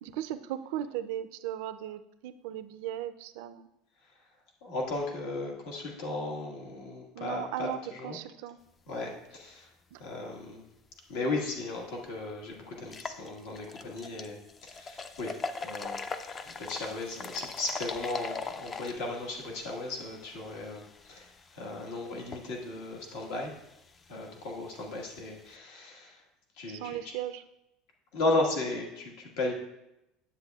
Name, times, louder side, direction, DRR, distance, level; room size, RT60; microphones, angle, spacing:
voice 1, 0.0-3.7 7.1-8.6 8.9-9.1 9.9-10.0 26.7-27.4, right 11 dB, 75° right, 12 dB, 0.4 m, -37 dB
voice 2, 4.6-8.2 8.9-9.7 10.0-10.6 11.1-15.3 15.6-16.0 16.4-23.5 24.1-26.2 26.6-27.0 28.1-29.5, left 2 dB, 75° left, 0 dB, 1.5 m, -35 dB
sound 1, 11.5-11.6 12.1-12.2 12.8-25.5, left 4 dB, 20° left, 0.3 m, -42 dB
9.7 x 7.3 x 2.3 m, 0.89 s
cardioid pair, 155°, 0 cm